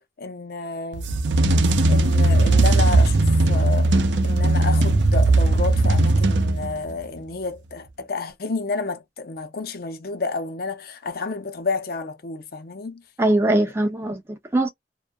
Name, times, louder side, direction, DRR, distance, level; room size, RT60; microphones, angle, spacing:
voice 1, 0.2-1.2 1.9-3.9 4.2-13.0, left 3 dB, 55° left, 0.6 m, -30 dB
sound 1, 0.9-6.9, right 2 dB, 75° right, 0.5 m, -18 dB
voice 2, 13.2-14.7, right 1 dB, 15° right, 0.4 m, -21 dB
2.6 x 2.2 x 2.2 m
head